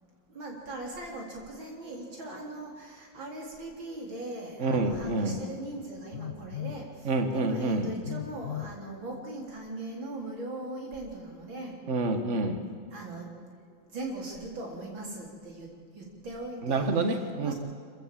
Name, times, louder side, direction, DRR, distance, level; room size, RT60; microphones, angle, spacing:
voice 1, 0.3-11.8 12.9-13.6 13.9-16.9 17.4-17.5, right 2 dB, 85° right, -1 dB, 4.5 m, -40 dB
voice 2, 4.6-5.4 7.0-7.9 11.9-12.6 16.6-17.5, right 2 dB, 40° right, 6 dB, 1.9 m, -27 dB
Telephone, 4.7-4.9 6.1-6.8 8.0-8.8, left 10 dB, 50° left, 1.3 m, -37 dB
26.0 x 15.5 x 7.7 m, 2.1 s
omnidirectional pair, 2.1 m